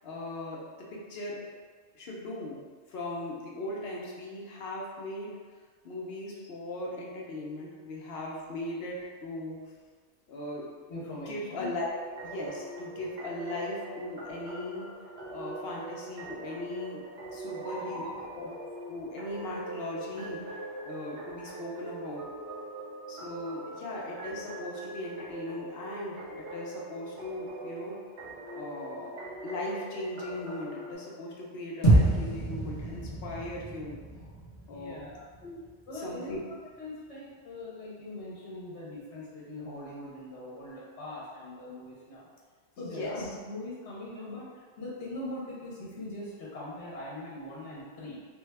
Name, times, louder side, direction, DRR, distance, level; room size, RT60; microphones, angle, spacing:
voice 1, 0.0-1.4 1.9-2.6 2.9-5.4 5.8-9.6 10.3-10.7 11.1-11.9 12.2-14.9 15.3-17.0 17.3-18.5 18.9-22.2 23.1-28.0 28.5-34.0 34.7-35.0 35.4-35.6 35.9-36.4 42.8-43.3, left 1 dB, 65° left, -3 dB, 0.9 m, -38 dB
voice 2, 10.9-11.7 17.5-18.2 34.7-35.3 35.9-42.3 42.8-44.5 44.8-48.3, left 1 dB, 85° left, -7 dB, 1.1 m, -41 dB
sound 1, 11.9-30.9, right 2 dB, 80° right, 1.0 m, -42 dB
sound 2, 31.8-36.2, right 2 dB, 35° left, 0.9 m, -28 dB
3.4 x 2.3 x 3.2 m, 1.5 s
omnidirectional pair, 1.1 m